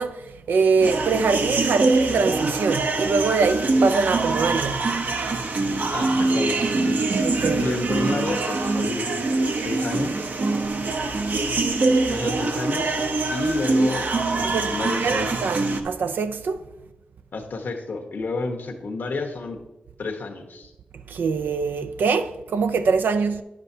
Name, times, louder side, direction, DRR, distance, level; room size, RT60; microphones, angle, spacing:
voice 1, 0.0-5.2 5.5-5.6 7.2-7.7 14.4-16.6 21.1-23.4, right 4 dB, 90° right, 0.4 m, -24 dB
sound 1, 0.8-15.8, right 3 dB, 65° right, 0.8 m, -24 dB
voice 2, 5.9-7.0 7.6-9.1 9.6-10.2 12.1-13.0 13.3-14.1 14.3-15.3 17.3-19.6 20.0-20.7, left 3 dB, 80° left, 1.2 m, -30 dB
9.8 x 7.3 x 2.8 m
cardioid pair, 60°, 3 cm